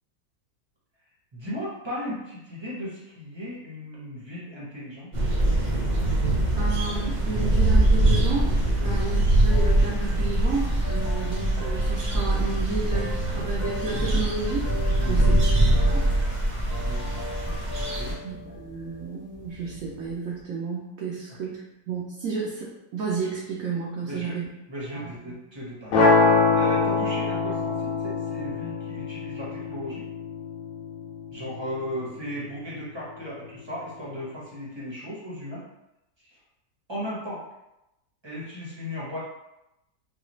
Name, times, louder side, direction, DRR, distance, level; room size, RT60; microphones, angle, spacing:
voice 1, 1.3-5.1 8.8-8.9 15.0-15.4 16.8-17.1 17.8-18.2 24.0-24.4 24.7-30.1 31.3-35.6 36.9-37.4 38.2-39.2, equal, 25° right, -7 dB, 0.7 m, -36 dB
sound 1, 5.1-18.1, right 1 dB, 85° right, 0.4 m, -23 dB
voice 2, 6.6-14.7 15.1-15.4 15.9-16.0 18.2-24.5 24.9-25.1 26.8-26.9, right 4 dB, 65° right, -5 dB, 0.9 m, -32 dB
sound 2, 9.5-20.4, left 2 dB, 40° left, 0.6 m, -39 dB
sound 3, 25.9-32.0, left 3 dB, 60° left, 1.0 m, -24 dB
3.9 x 2.3 x 3.0 m, 0.91 s
omnidirectional pair, 1.9 m